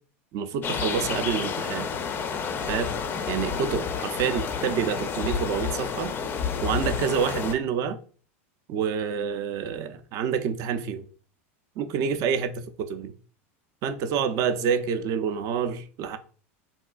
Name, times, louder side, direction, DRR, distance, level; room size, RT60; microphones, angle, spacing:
voice 1, 0.3-1.9 2.7-3.0 3.3-6.1 6.6-8.0 8.7-11.1 11.8-13.1 13.8-16.2, right 7 dB, 50° right, 0.4 m, -28 dB
sound 1, 0.6-7.6, left 6 dB, 30° left, 0.4 m, -30 dB
3.5 x 2.4 x 2.3 m
hypercardioid pair, 110°, 7 cm